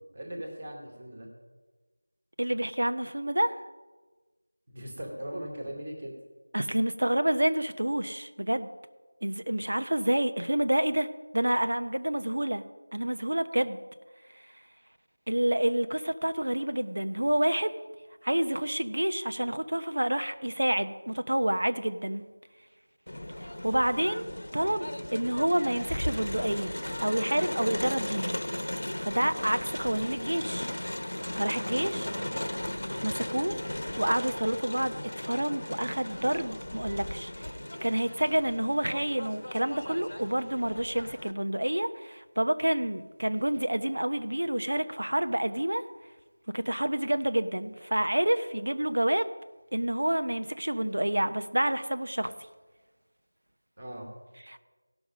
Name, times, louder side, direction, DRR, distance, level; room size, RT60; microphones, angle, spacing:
voice 1, 0.1-1.3 4.7-6.1 31.6-32.3 33.0-33.2 53.8-54.1, equal, 20° right, 1 dB, 1.5 m, -40 dB
voice 2, 2.4-3.5 6.5-8.7 9.2-11.1 11.3-12.6 12.9-13.8 15.3-17.7 18.2-22.2 23.4-24.3 24.5-26.7 27.0-28.4 29.0-30.7 31.3-32.1 33.0-33.6 34.0-37.3 37.8-45.8 46.5-49.3 49.7-52.3 54.5-54.6, right 1 dB, 80° right, 10 dB, 0.9 m, -28 dB
Crowd, 23.1-41.3, left 1 dB, 60° left, 1.0 m, -36 dB
17.0 x 6.1 x 5.2 m, 1.3 s
figure-of-eight pair, 180°, 0 cm